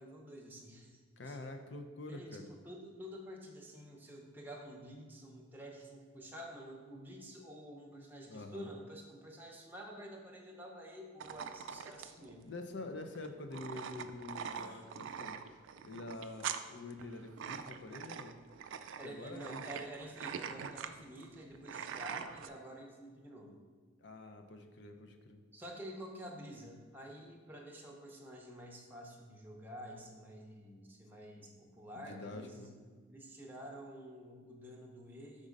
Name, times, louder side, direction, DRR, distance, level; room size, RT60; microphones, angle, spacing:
voice 1, 0.0-1.4 2.1-12.5 14.3-14.8 19.0-23.6 25.5-32.8 33.1-35.5, equal, 10° right, -1 dB, 0.8 m, -49 dB
voice 2, 1.2-2.5 8.3-8.7 12.4-15.4 15.8-18.4 19.0-19.6 24.0-25.4 32.0-32.7, left 2 dB, 60° left, 5 dB, 0.6 m, -46 dB
sound 1, 11.2-22.5, right 7 dB, 70° right, 0.3 m, -44 dB
5.3 x 3.7 x 5.1 m, 1.5 s
head